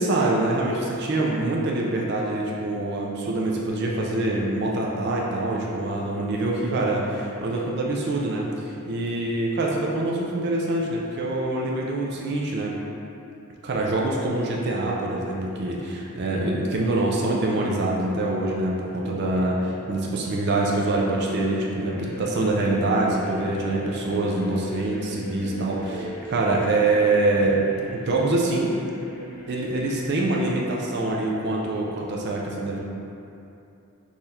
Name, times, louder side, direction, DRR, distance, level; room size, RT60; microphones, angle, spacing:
voice 1, 0.0-8.5 8.8-12.8 13.6-27.6 27.9-28.8 29.5-32.8, right 2 dB, 50° right, -2 dB, 0.4 m, -25 dB
sound 1, 21.7-30.0, equal, 90° left, 0.9 m, -38 dB
3.8 x 3.0 x 2.6 m, 2.7 s
head